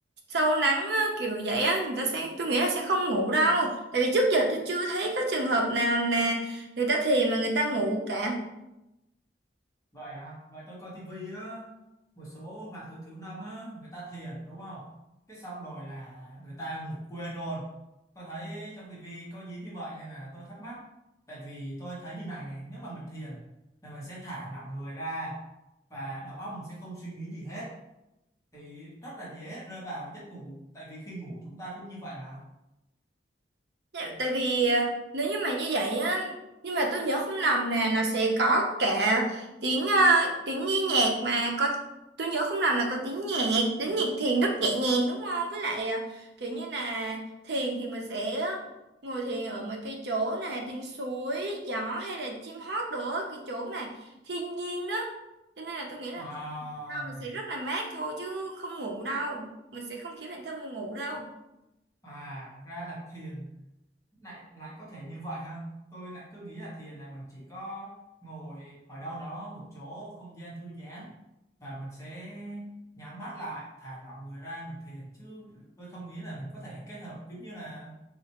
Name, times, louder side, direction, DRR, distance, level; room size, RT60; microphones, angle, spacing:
voice 1, 0.3-8.4 33.9-36.3 36.6-41.8 42.2-46.0 46.4-48.6 49.0-53.9 54.3-55.1 55.6-56.2 56.9-59.5 59.7-61.3, right 2 dB, 65° right, 1 dB, 0.6 m, -28 dB
voice 2, 9.9-11.7 12.2-14.9 15.3-17.7 18.1-20.8 21.3-23.5 23.8-25.4 25.9-27.7 28.5-32.4 56.1-57.3 62.0-63.6 64.2-71.1 71.6-77.9, right 1 dB, 15° left, -6 dB, 0.9 m, -40 dB
4.1 x 2.4 x 2.9 m, 0.92 s
head